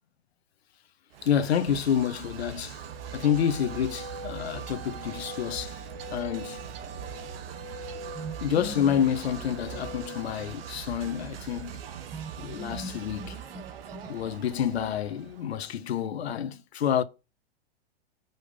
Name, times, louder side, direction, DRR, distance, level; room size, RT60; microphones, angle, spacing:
sound 1, 1.1-15.8, right 9 dB, 65° right, 1.4 m, -42 dB
voice 1, 1.2-2.8 3.1-5.8 6.1-6.6 8.4-11.8 12.4-13.4 14.1-17.0, left 9 dB, 80° left, 1.3 m, -28 dB
sound 2, 2.7-11.1, right 1 dB, 35° right, 2.0 m, -44 dB
sound 3, 8.1-10.7 12.1-14.6, right 1 dB, 5° right, 1.1 m, -42 dB
6.2 x 5.3 x 6.8 m
hypercardioid pair, 130°, 31 cm